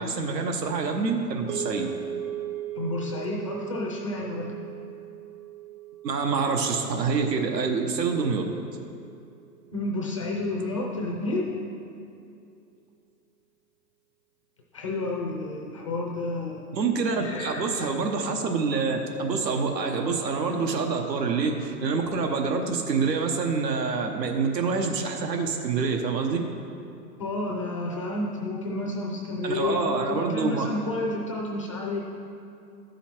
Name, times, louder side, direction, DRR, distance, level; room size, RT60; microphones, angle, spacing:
voice 1, 0.0-1.9 6.0-8.4 16.7-26.4 29.4-30.7, right 4 dB, 75° right, 3 dB, 1.2 m, -26 dB
sound 1, 1.5-9.8, right 11 dB, 45° right, 0.5 m, -39 dB
voice 2, 2.7-4.6 9.7-11.5 14.7-16.6 17.1-18.1 27.2-32.0, left 2 dB, 20° left, -1 dB, 0.4 m, -30 dB
12.5 x 5.6 x 4.4 m, 2.6 s
hypercardioid pair, 135°, 50 cm